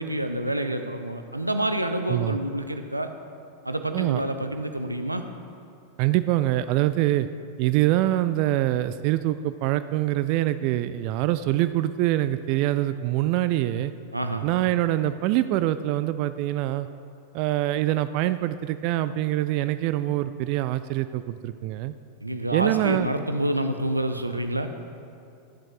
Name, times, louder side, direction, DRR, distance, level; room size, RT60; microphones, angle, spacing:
voice 1, 0.0-3.1 3.6-5.2 14.1-14.4 22.2-24.7, right 1 dB, 85° right, 7 dB, 0.6 m, -28 dB
voice 2, 6.0-7.3 7.6-13.9 14.4-16.9 17.3-21.9 22.5-23.1, right 14 dB, 45° right, 12 dB, 0.3 m, -24 dB
12.0 x 7.4 x 5.0 m, 2.5 s
figure-of-eight pair, 90°, 0 cm